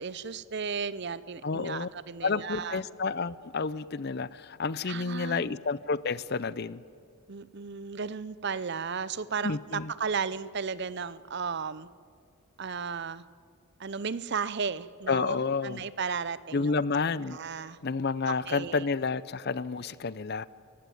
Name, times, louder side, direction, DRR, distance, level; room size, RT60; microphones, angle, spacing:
voice 1, 0.0-2.8 4.9-5.5 7.3-11.9 12.6-13.2 13.8-16.7 17.3-17.8 18.2-18.9, right 5 dB, 50° right, 17 dB, 0.6 m, -34 dB
voice 2, 1.4-1.9 2.2-6.8 9.4-9.9 15.1-15.8 16.5-17.4 17.8-20.5, left 4 dB, 45° left, 18 dB, 0.6 m, -30 dB
29.0 x 15.5 x 9.3 m, 2.3 s
head